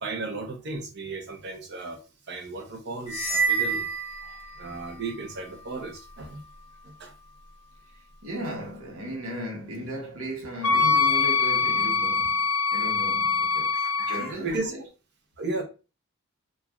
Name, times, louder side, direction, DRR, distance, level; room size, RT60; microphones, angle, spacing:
voice 1, 0.0-2.0 2.3-3.9 4.6-6.4 6.8-7.1 13.7-14.7 15.4-15.6, right 3 dB, 55° right, 0.7 m, -35 dB
sound 1, 3.1-4.9, right 5 dB, 35° left, 0.7 m, -28 dB
voice 2, 8.2-14.8, equal, 85° right, 1.0 m, -36 dB
Wind instrument woodwind instrument, 10.6-14.2, left 5 dB, 80° left, 0.5 m, -23 dB
3.1 x 2.3 x 2.3 m
head